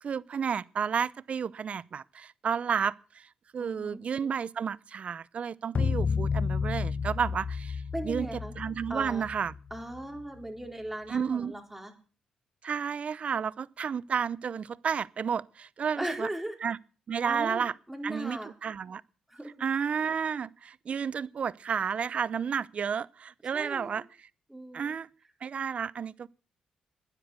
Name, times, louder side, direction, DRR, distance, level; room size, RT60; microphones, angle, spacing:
voice 1, 0.0-8.3 8.6-9.5 11.1-11.5 12.6-16.3 16.6-16.8 17.1-17.7 18.0-19.0 19.6-24.0 24.7-25.1 25.4-26.3, right 7 dB, 55° right, 0.6 m, -31 dB
voice 2, 3.6-4.0 7.9-8.5 8.9-9.2 9.7-11.9 15.9-16.5 17.2-18.5 19.3-19.5 23.5-24.0 24.5-24.9, right 1 dB, 10° right, 4.3 m, -38 dB
sound 1, 5.7-10.2, left 5 dB, 50° left, 0.8 m, -31 dB
12.0 x 10.0 x 8.0 m
supercardioid pair, 60°, 3 cm